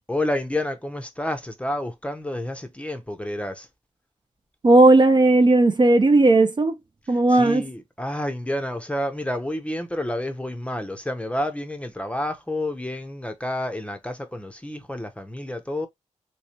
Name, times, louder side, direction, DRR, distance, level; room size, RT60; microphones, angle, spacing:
voice 1, 0.1-3.7 7.1-15.9, left 1 dB, 10° left, 0.7 m, -29 dB
voice 2, 4.6-6.7 7.1-7.6, right 2 dB, 35° right, 0.6 m, -16 dB
3.2 x 3.2 x 2.8 m
wide cardioid pair, 100°, 13 cm